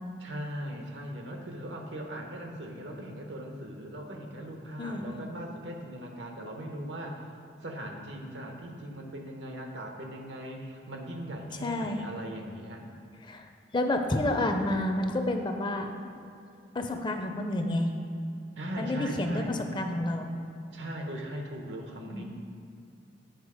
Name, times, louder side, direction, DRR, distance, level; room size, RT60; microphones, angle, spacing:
voice 1, 0.2-7.3 7.6-12.8 18.6-19.5 20.7-22.2, equal, 80° right, 2 dB, 0.9 m, -39 dB
voice 2, 4.8-5.1 11.6-12.0 13.2-13.5 13.7-15.9 16.7-17.9 18.8-20.3 22.0-22.2, left 1 dB, 25° left, 5 dB, 0.5 m, -29 dB
8.1 x 4.4 x 4.8 m, 2.5 s
head